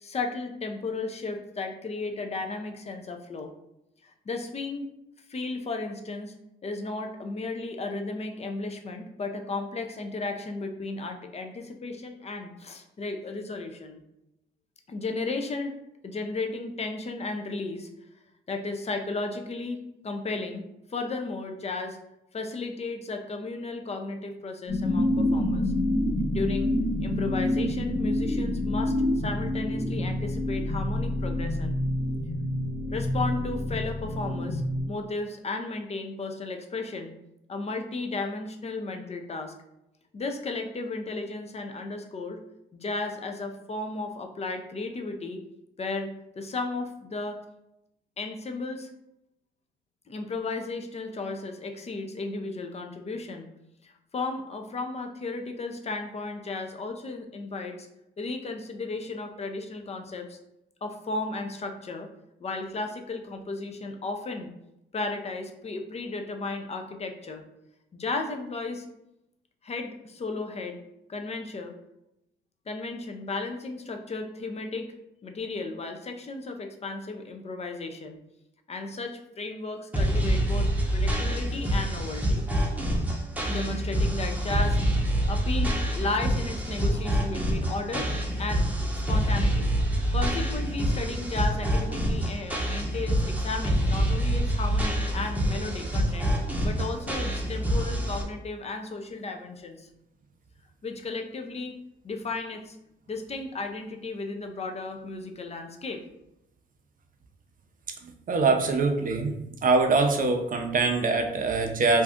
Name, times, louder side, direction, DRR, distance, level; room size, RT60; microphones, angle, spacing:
voice 1, 0.0-3.5 4.0-4.9 5.3-6.3 6.6-14.0 14.9-15.8 16.0-17.9 18.5-20.6 20.9-22.0 22.3-25.7 26.3-26.7 27.0-31.8 32.9-34.6 34.9-37.1 37.5-39.5 40.1-42.4 42.7-45.4 45.8-47.4 48.2-48.9 50.1-53.5 53.8-57.9 58.2-60.4 60.8-62.1 62.4-64.5 64.9-67.4 67.9-68.9 69.6-70.8 71.1-71.7 72.7-74.9 75.2-78.2 78.7-82.4 83.5-84.8 85.3-88.1 88.4-88.7 88.9-89.7 90.1-96.3 96.6-99.9 100.8-101.8 102.0-102.8 103.1-106.0, left 3 dB, 30° left, 5 dB, 0.5 m, -34 dB
sound 1, 24.7-34.8, left 1 dB, 85° left, 1.2 m, -27 dB
sound 2, 79.9-98.2, equal, 5° right, 0.8 m, -26 dB
voice 2, 108.0-109.4 109.6-112.0, right 3 dB, 45° right, 5 dB, 0.6 m, -23 dB
2.6 x 2.3 x 3.5 m, 0.86 s
supercardioid pair, 70°, 20 cm